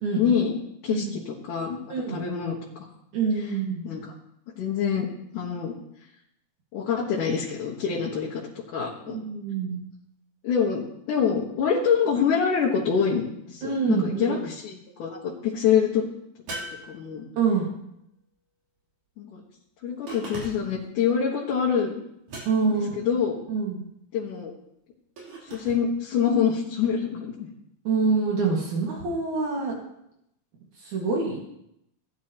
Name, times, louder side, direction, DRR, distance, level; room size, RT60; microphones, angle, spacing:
voice 1, 0.2-0.5 0.8-1.2 1.5-1.8 2.1-2.6 3.8-4.0 4.6-5.1 5.3-5.8 6.7-8.4 8.7-9.2 10.4-16.0 16.9-17.3 19.2-19.4 19.8-21.9 22.7-23.4 24.1-24.5 25.5-27.5, left 7 dB, 80° left, -4 dB, 3.0 m, -25 dB
voice 2, 3.1-3.9 9.1-9.9 13.6-14.5 17.4-17.6 22.5-22.9 23.5-23.8 27.8-29.8 30.8-31.4, right 4 dB, 70° right, -3 dB, 3.3 m, -26 dB
sound 1, 16.5-17.6 20.1-20.8 22.3-22.9 25.2-25.8, right 2 dB, 85° right, 4.9 m, -39 dB
17.5 x 11.5 x 2.9 m, 0.80 s
omnidirectional pair, 3.6 m